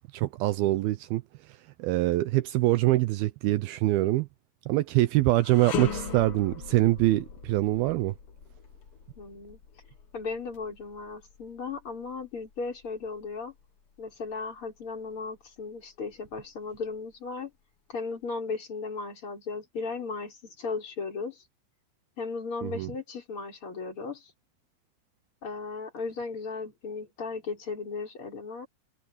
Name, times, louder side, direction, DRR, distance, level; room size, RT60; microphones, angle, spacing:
voice 1, 0.1-1.2 1.8-4.3 4.7-8.1 22.6-22.9, right 17 dB, 80° right, 2.3 m, -24 dB
sound 1, 5.4-14.7 15.1-15.3 16.1-17.0, left 7 dB, 65° left, 1.4 m, -40 dB
voice 2, 9.2-9.6 10.1-13.5 14.0-17.5 17.9-21.4 22.2-24.3 25.4-28.7, left 4 dB, 30° left, 6.3 m, -36 dB
omnidirectional pair, 5.0 m